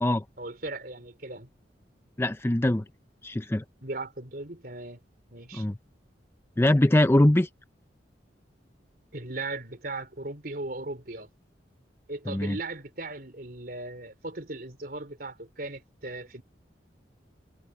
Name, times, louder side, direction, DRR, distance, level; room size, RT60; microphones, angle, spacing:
voice 1, 0.4-1.5 3.8-5.0 5.3-5.7 9.1-11.3 12.1-16.4, right 2 dB, 55° right, 4.1 m, -37 dB
voice 2, 2.2-2.8 3.2-3.6 5.5-5.8 6.6-7.5 12.3-12.6, left 1 dB, 15° left, 0.5 m, -22 dB
head